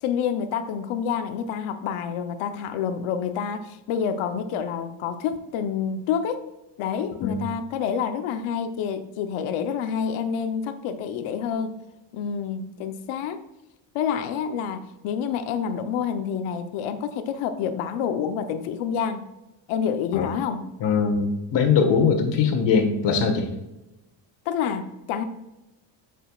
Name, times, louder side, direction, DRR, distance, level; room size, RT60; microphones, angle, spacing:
voice 1, 0.0-6.5 6.8-11.8 12.1-13.4 13.9-19.3 19.7-20.7 24.5-25.2, left 7 dB, 75° left, 9 dB, 0.9 m, -28 dB
voice 2, 20.8-23.5, left 5 dB, 55° left, 3 dB, 1.6 m, -21 dB
9.1 x 6.6 x 2.4 m, 0.95 s
cardioid pair, 155°, 50 cm